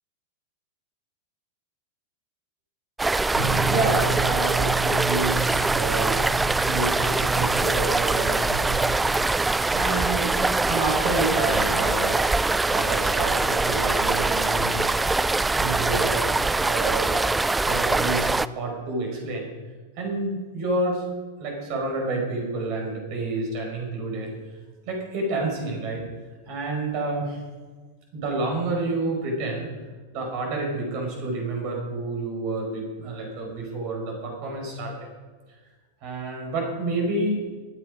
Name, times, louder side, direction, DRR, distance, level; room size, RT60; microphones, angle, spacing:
sound 1, 3.0-18.5, right 3 dB, 10° right, 0.4 m, -23 dB
sound 2, 3.3-11.0, right 5 dB, 80° left, 5.7 m, -33 dB
voice 1, 3.3-6.3 6.6-12.3 12.6-15.3 15.6-16.3 16.6-17.2 17.6-19.5 20.0-21.0 21.4-24.3 24.9-26.0 26.4-27.4 28.1-29.7 30.1-34.9 36.0-37.4, right 3 dB, 45° right, 1 dB, 5.5 m, -29 dB
24.0 x 8.2 x 5.2 m, 1.4 s
figure-of-eight pair, 90°, 0 cm